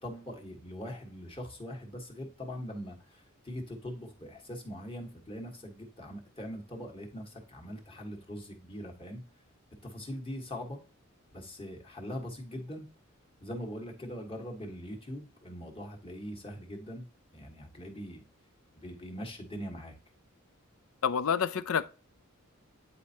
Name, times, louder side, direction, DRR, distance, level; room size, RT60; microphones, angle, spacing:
voice 1, 0.0-9.2 9.8-10.8 11.3-12.9 13.4-17.1 17.3-18.2 18.8-19.9, equal, 25° left, 1.5 m, -42 dB
voice 2, 21.0-21.8, left 7 dB, 75° left, 0.5 m, -28 dB
9.1 x 4.3 x 2.8 m
head